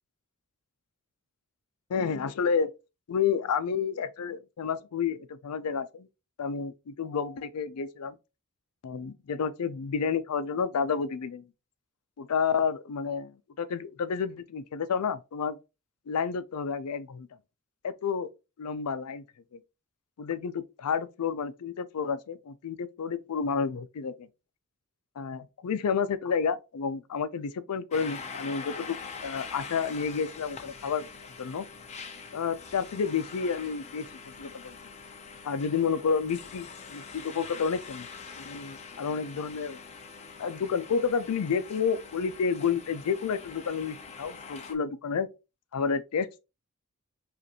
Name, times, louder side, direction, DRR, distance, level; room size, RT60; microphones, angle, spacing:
voice 1, 1.9-2.7 3.1-6.1 6.4-8.2 8.8-11.4 12.2-15.6 16.1-17.3 17.8-18.3 18.6-19.2 19.5-19.6 20.2-24.3 25.2-29.0 29.2-31.1 31.4-31.7 32.3-34.8 35.4-38.1 38.4-39.8 40.4-45.3 45.7-46.4, left 6 dB, 85° left, 0.4 m, -30 dB
sound 1, 27.9-44.7, left 5 dB, 30° left, 0.5 m, -44 dB
5.1 x 2.5 x 2.8 m
head